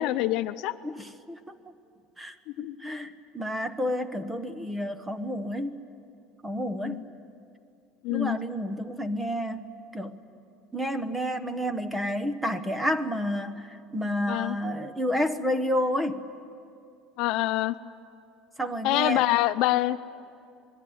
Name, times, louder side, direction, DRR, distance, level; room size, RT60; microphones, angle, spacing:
voice 1, 0.0-0.7 2.6-2.8 6.8-7.0 8.0-8.4 14.3-14.6 17.2-17.7 18.8-20.0, left 16 dB, 60° left, 11 dB, 0.7 m, -25 dB
voice 2, 0.8-1.5 2.2-5.8 6.4-7.0 8.1-9.7 9.9-10.1 10.7-16.2 18.6-19.3, equal, 10° right, 11 dB, 1.1 m, -30 dB
27.0 x 21.5 x 9.5 m, 2.5 s
cardioid pair, 150°, 0 cm